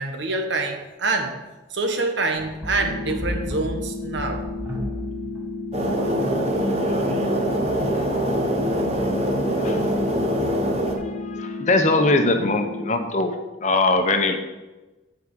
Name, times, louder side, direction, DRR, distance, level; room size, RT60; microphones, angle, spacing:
voice 1, 0.0-1.4 1.7-4.5, right 3 dB, 75° right, 4 dB, 1.3 m, -26 dB
sound 1, 2.4-5.7, equal, 10° right, 1.6 m, -33 dB
sound 2, 2.8-12.8, left 3 dB, 60° left, 1.4 m, -33 dB
sound 3, 5.7-11.0, right 1 dB, 35° right, 1.2 m, -23 dB
voice 2, 10.9-13.3 13.6-14.4, left 2 dB, 40° left, 6 dB, 0.9 m, -21 dB
9.7 x 5.0 x 7.6 m, 1.1 s
head